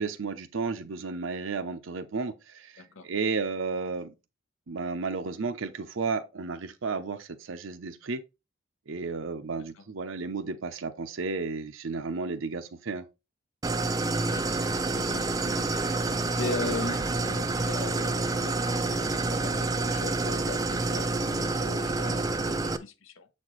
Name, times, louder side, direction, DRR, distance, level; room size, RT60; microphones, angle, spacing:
voice 1, 0.0-4.1 4.7-8.2 8.9-13.1, right 4 dB, 80° right, 0.7 m, -33 dB
voice 2, 2.8-3.1 9.8-9.9 14.2-14.5 14.8-23.3, left 3 dB, 80° left, 0.8 m, -39 dB
Idling, 13.6-22.8, right 3 dB, 20° right, 0.3 m, -28 dB
7.2 x 4.2 x 3.1 m
head